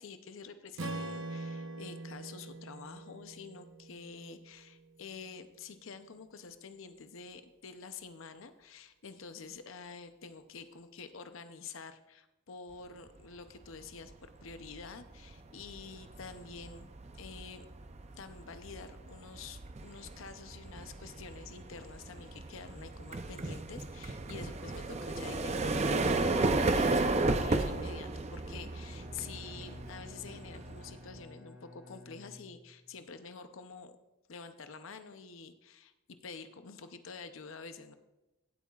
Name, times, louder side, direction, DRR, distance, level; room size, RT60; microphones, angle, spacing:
voice 1, 0.0-14.1 14.4-16.9 17.1-17.7 18.2-33.9 34.3-38.0, left 5 dB, 70° left, 9 dB, 0.6 m, -48 dB
Strum, 0.8-5.0, right 2 dB, 70° right, 0.9 m, -43 dB
Tram pass away, 13.8-14.1 14.5-31.2, right 2 dB, 30° right, 0.5 m, -34 dB
Bowed string instrument, 28.7-32.9, left 2 dB, 10° right, 1.3 m, -52 dB
16.5 x 8.4 x 2.4 m, 1.0 s
head